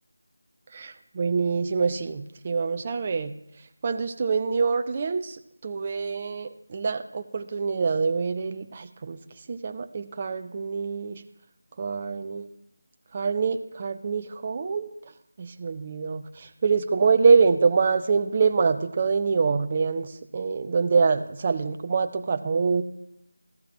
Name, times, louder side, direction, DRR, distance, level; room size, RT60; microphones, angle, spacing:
voice 1, 0.7-3.3 3.8-9.2 9.5-11.2 11.8-12.5 13.1-14.9 15.4-22.8, right 5 dB, 25° right, 8 dB, 0.5 m, -25 dB
14.0 x 13.5 x 3.0 m, 0.78 s
figure-of-eight pair, 165°, 0 cm